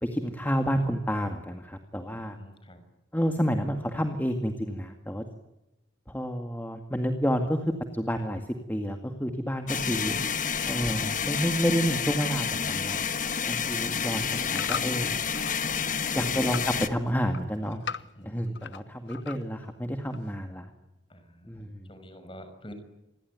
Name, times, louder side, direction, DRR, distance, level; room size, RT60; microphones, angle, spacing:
voice 1, 0.0-2.4 3.1-5.2 6.1-7.6 7.9-10.2 10.7-13.0 13.5-15.2 16.1-17.8 18.2-20.7 21.4-21.9, equal, 10° left, 5 dB, 2.0 m, -30 dB
voice 2, 2.2-2.8 15.7-16.4 18.2-18.7 21.1-22.7, equal, 25° left, 9 dB, 5.9 m, -48 dB
sound 1, 9.7-16.9, left 6 dB, 45° left, 1.5 m, -29 dB
sound 2, 13.9-15.6 16.0-16.7 17.1-18.8 19.1-19.7 20.1-20.2, left 6 dB, 65° left, 1.0 m, -38 dB
27.5 x 21.5 x 9.6 m, 0.96 s
head